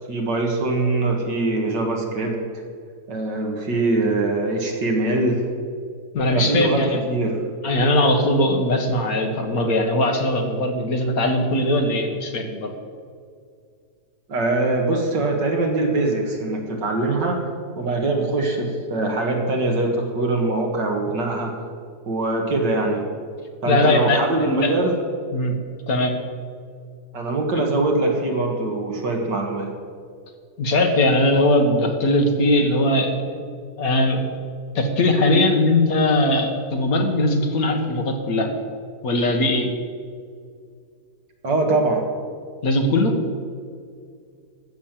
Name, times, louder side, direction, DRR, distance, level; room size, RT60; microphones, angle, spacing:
voice 1, 0.1-2.4 3.1-5.4 6.3-7.4 14.3-17.4 17.8-21.5 22.1-23.0 23.6-25.0 27.1-29.7 41.4-42.1, right 2 dB, 70° right, 2 dB, 2.2 m, -22 dB
voice 2, 6.1-7.0 7.6-12.7 23.7-24.7 25.3-25.6 25.9-26.1 27.6-27.7 30.6-33.5 33.8-34.3 34.8-38.5 39.0-39.7 42.6-43.2, left 1 dB, 55° left, 3 dB, 1.8 m, -20 dB
14.0 x 7.3 x 7.4 m, 2.2 s
omnidirectional pair, 1.9 m